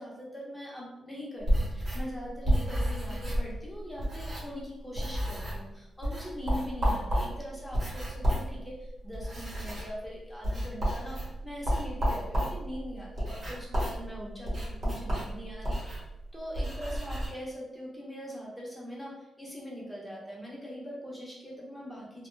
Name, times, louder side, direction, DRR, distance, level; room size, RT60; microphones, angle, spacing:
voice 1, 0.0-16.0 16.3-22.3, equal, 5° left, -5 dB, 0.7 m, -42 dB
sound 1, 1.4-4.7 4.9-5.7 6.0-17.3, equal, 50° right, 1.0 m, -31 dB
2.1 x 2.0 x 3.1 m, 0.93 s
cardioid pair, 115°, 0 cm